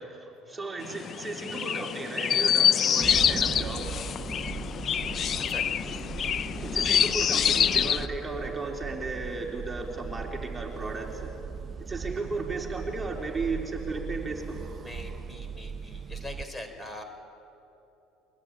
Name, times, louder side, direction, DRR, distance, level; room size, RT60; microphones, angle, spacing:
voice 1, 0.0-3.9 6.6-11.4 11.8-14.6, right 3 dB, 15° right, 1 dB, 3.8 m, -35 dB
Chirp tweet, 0.8-8.1, left 8 dB, 45° left, 0.8 m, -26 dB
sound 1, 3.0-16.4, right 6 dB, 35° right, 0.9 m, -38 dB
voice 2, 14.5-17.0, left 1 dB, 15° left, 7 dB, 3.9 m, -43 dB
23.0 x 21.0 x 9.8 m, 3.0 s
supercardioid pair, 85°, 0 cm